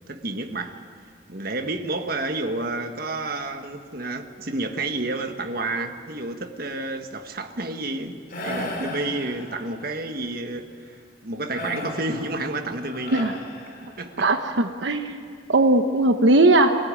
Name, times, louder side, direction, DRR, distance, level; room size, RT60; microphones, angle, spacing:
voice 1, 0.1-0.8 1.3-10.7 11.2-13.3 14.0-14.3, right 2 dB, 55° right, 6 dB, 1.5 m, -30 dB
sound 1, 8.3-9.9 11.5-14.2, left 1 dB, 55° left, 4.2 m, -35 dB
voice 2, 14.2-15.2 15.5-16.8, right 2 dB, 80° right, 6 dB, 1.0 m, -19 dB
23.0 x 15.5 x 9.8 m, 2.2 s
head